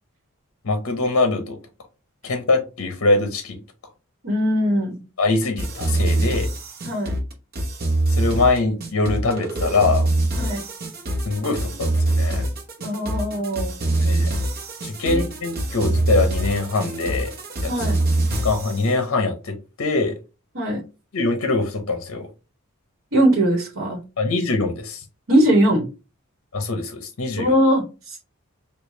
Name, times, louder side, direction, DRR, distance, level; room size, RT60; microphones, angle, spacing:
voice 1, 0.6-1.6 2.2-3.6 5.2-6.5 8.1-10.1 11.2-12.5 14.0-14.4 14.8-17.3 17.6-17.7 18.3-20.2 21.1-22.3 24.2-25.0 26.5-27.5, left 3 dB, 65° left, 0.6 m, -23 dB
voice 2, 4.2-5.0 6.8-7.1 10.3-10.6 12.8-13.7 15.0-15.3 17.7-18.0 20.5-20.8 23.1-24.0 25.3-25.8 27.4-28.2, equal, 70° right, 1.2 m, -20 dB
sound 1, 5.6-18.8, right 2 dB, 45° right, 0.8 m, -24 dB
4.8 x 2.3 x 2.6 m
head